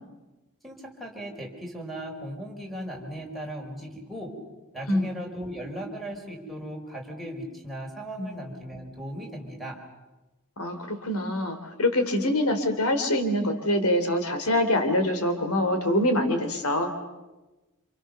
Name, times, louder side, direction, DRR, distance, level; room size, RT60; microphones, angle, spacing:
voice 1, 0.6-4.3 4.7-9.8, right 1 dB, ahead, 1 dB, 5.5 m, -37 dB
voice 2, 10.6-16.9, left 1 dB, 75° left, 7 dB, 3.3 m, -25 dB
29.5 x 28.0 x 6.9 m, 1.1 s
head